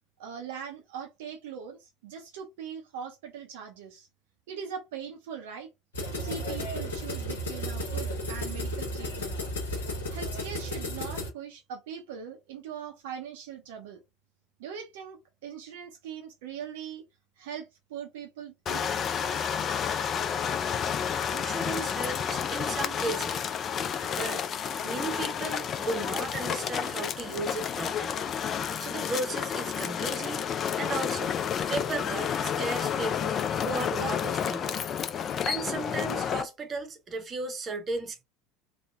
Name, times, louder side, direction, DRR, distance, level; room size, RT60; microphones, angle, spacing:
voice 1, 0.2-4.1 4.5-5.7 6.1-9.4 10.1-14.0 14.6-17.0 17.4-18.9, right 7 dB, 65° right, 0.5 m, -41 dB
sound 1, 5.9-11.3, equal, 75° left, 1.0 m, -33 dB
sound 2, 18.7-36.4, left 8 dB, 35° left, 0.3 m, -30 dB
voice 2, 21.3-23.5 24.1-24.4 24.8-28.2 28.8-30.5 30.8-31.3 31.7-33.4 33.6-34.8 35.4-38.2, right 3 dB, 30° right, 0.7 m, -35 dB
3.0 x 2.1 x 2.2 m
figure-of-eight pair, 70°, 0 cm